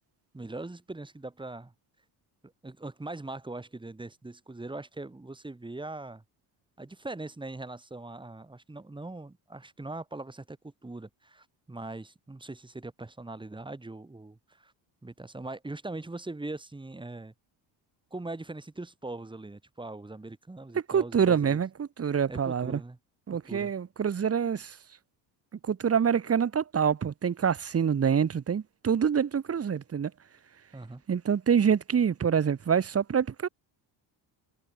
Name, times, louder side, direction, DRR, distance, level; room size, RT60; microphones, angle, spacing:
voice 1, 0.3-1.7 2.6-6.2 6.8-14.7 15.0-17.3 18.1-21.6 22.3-23.0 23.5-23.7 30.7-31.0, right 2 dB, 10° right, 2.0 m, -41 dB
voice 2, 20.9-22.8 23.3-24.8 25.6-30.1 31.1-33.5, right 7 dB, 30° right, 1.4 m, -26 dB
cardioid pair, 105°, 46 cm